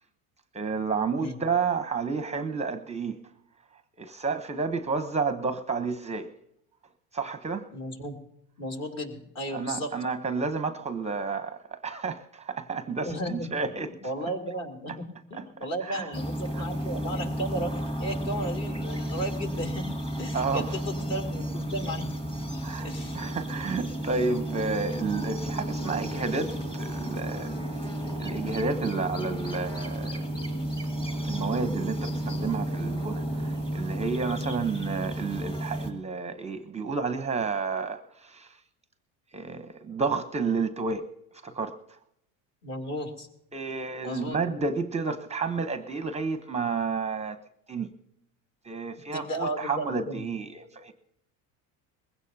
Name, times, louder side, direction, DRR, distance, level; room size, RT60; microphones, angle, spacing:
voice 1, 0.5-3.2 4.0-6.3 7.1-7.7 9.5-13.9 15.3-15.4 15.9-16.0 16.5-16.7 20.3-20.7 22.6-22.9 23.1-27.9 28.2-30.3 31.2-38.5 39.3-41.1 41.4-41.8 43.5-47.4 47.7-47.9 48.7-50.9, right 4 dB, 20° right, 0.7 m, -31 dB
voice 2, 7.7-8.2 8.6-9.9 13.0-17.7 18.0-19.9 20.2-22.1 22.8-23.2 34.4-34.6 42.6-43.3 44.0-44.6 49.1-50.2, equal, 45° left, 2.9 m, -34 dB
sound 1, 16.1-35.9, right 1 dB, 15° left, 1.7 m, -32 dB
21.0 x 16.0 x 2.7 m
cardioid pair, 125°, 37 cm